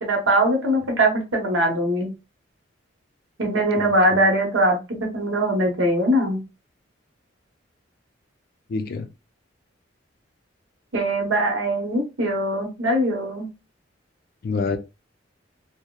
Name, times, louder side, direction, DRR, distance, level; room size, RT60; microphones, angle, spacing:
voice 1, 0.0-2.1 3.4-6.4 10.9-13.5, right 1 dB, 85° right, 0.9 m, -21 dB
voice 2, 3.8-4.2 8.7-9.1 14.4-14.8, left 4 dB, 50° left, 0.3 m, -27 dB
2.7 x 2.0 x 2.2 m
head